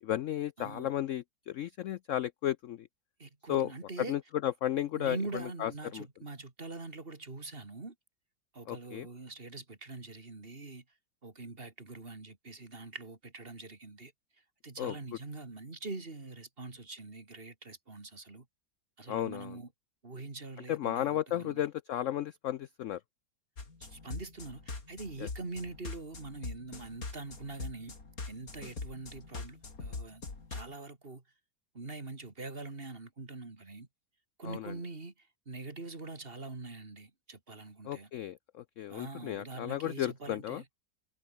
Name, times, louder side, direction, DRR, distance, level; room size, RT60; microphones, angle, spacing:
voice 1, 0.0-2.9 3.5-3.7 4.0-6.1 8.7-9.1 14.8-15.0 19.1-19.6 20.7-23.0 25.2-25.3 34.4-34.7 37.8-40.6, left 12 dB, 70° left, 0.7 m, -34 dB
voice 2, 0.6-0.9 3.2-4.1 4.9-7.9 8.5-10.8 11.2-14.1 14.6-18.5 19.0-19.7 20.0-21.6 23.8-28.0 28.3-30.2 30.5-31.2 31.7-33.9 34.4-38.1 38.9-40.6, right 3 dB, 30° right, 2.6 m, -44 dB
sound 1, 23.6-30.7, left 3 dB, 50° left, 3.7 m, -43 dB
omnidirectional pair, 1.9 m